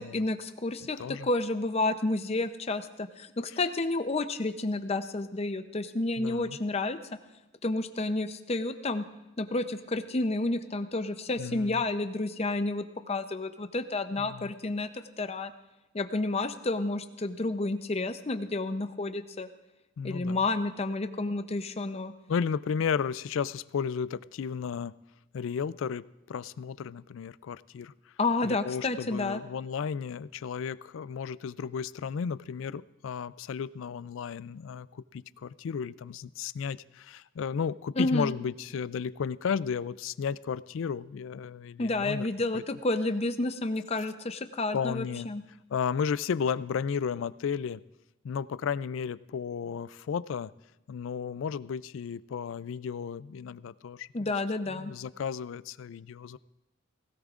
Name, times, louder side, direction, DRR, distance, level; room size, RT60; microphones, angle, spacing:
voice 1, 0.0-7.0 7.6-9.1 9.4-15.5 15.9-19.5 20.0-22.1 28.2-29.4 38.0-38.3 41.8-45.4 54.1-54.9, left 2 dB, 30° left, 9 dB, 0.6 m, -30 dB
voice 2, 1.0-1.3 3.5-3.6 6.2-6.6 11.4-11.8 14.2-14.5 20.0-20.4 22.3-25.0 25.3-27.9 28.4-42.3 42.5-42.6 44.7-45.3 45.7-47.8 48.2-50.5 50.9-54.3 54.7-56.4, left 6 dB, 65° left, 18 dB, 0.3 m, -33 dB
19.0 x 17.0 x 2.5 m, 0.96 s
head